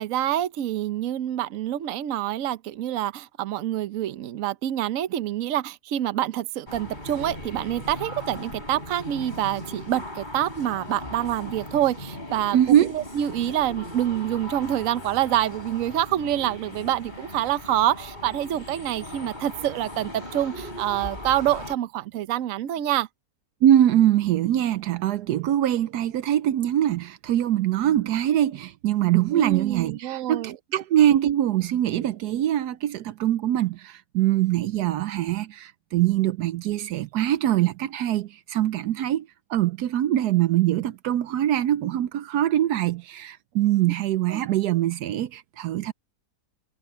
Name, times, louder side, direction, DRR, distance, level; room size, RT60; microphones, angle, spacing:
voice 1, 0.0-12.6 12.9-23.1 29.3-30.6 44.3-44.4, right 12 dB, 60° right, 1.1 m, -26 dB
sound 1, 6.7-21.7, left 1 dB, 25° left, 5.3 m, -39 dB
voice 2, 12.5-12.9 23.6-45.9, right 12 dB, 80° right, 1.2 m, -23 dB
omnidirectional pair, 1.7 m